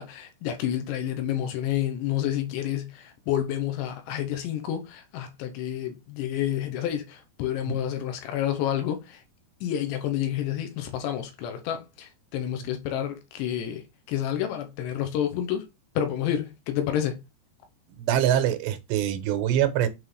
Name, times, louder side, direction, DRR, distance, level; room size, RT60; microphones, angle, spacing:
voice 1, 0.0-9.2 9.6-15.6 16.0-17.2, left 10 dB, 85° left, 3.1 m, -29 dB
voice 2, 17.9-19.9, right 10 dB, 85° right, 3.0 m, -24 dB
8.0 x 3.7 x 3.2 m
omnidirectional pair, 5.0 m